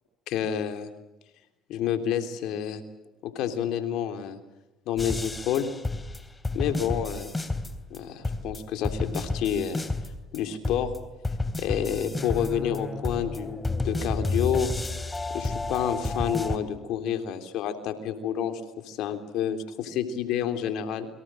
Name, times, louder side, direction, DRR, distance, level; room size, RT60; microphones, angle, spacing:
voice 1, 0.3-0.9 1.7-2.8 3.2-4.4 4.9-5.7 6.5-7.3 7.9-9.9 10.3-10.9 11.6-14.7 15.3-21.1, left 9 dB, 70° left, 8 dB, 3.4 m, -29 dB
sound 1, 5.0-8.0 8.2-10.4 10.6-16.6, left 2 dB, 20° left, 3.3 m, -31 dB
29.0 x 23.5 x 7.8 m, 0.98 s
supercardioid pair, 75°, 0 cm